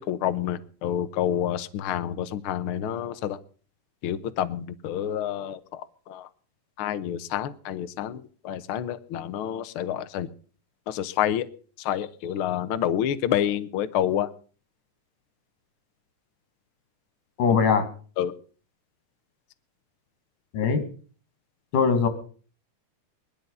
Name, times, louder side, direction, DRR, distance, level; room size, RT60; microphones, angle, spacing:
voice 1, 0.1-3.4 4.0-6.3 6.8-10.3 10.9-11.5 11.8-14.3 18.2-18.3, left 10 dB, 70° left, 12 dB, 1.3 m, -28 dB
voice 2, 17.4-17.9 20.5-20.8 21.7-22.1, left 5 dB, 85° left, 8 dB, 3.8 m, -21 dB
19.0 x 12.5 x 5.5 m, 0.42 s
omnidirectional pair, 3.5 m